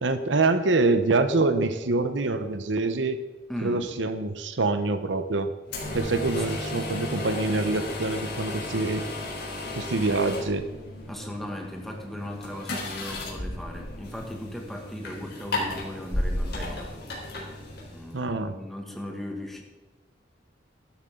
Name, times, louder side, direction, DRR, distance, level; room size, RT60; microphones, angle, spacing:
voice 1, 0.0-3.2 3.6-5.5 5.9-9.1 9.8-10.6 18.1-18.5, right 3 dB, 80° right, 10 dB, 0.9 m, -25 dB
voice 2, 3.5-3.9 6.4-6.5 11.1-16.9 17.9-19.6, left 1 dB, ahead, 0 dB, 2.0 m, -37 dB
coffee machine, 5.7-18.2, left 1 dB, 60° left, 3.9 m, -34 dB
13.5 x 12.5 x 3.8 m, 1.2 s
head